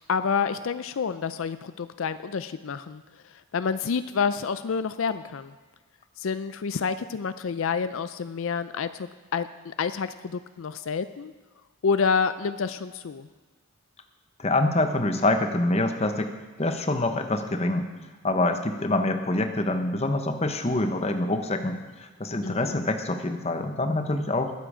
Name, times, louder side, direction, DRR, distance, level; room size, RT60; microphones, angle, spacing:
voice 1, 0.1-5.5 6.2-11.3 11.8-13.3 22.4-22.8, left 5 dB, 65° left, 12 dB, 0.4 m, -28 dB
voice 2, 14.4-16.3 16.6-17.9 18.2-24.5, left 2 dB, 30° left, 7 dB, 0.9 m, -26 dB
21.0 x 7.6 x 4.9 m, 1.3 s
head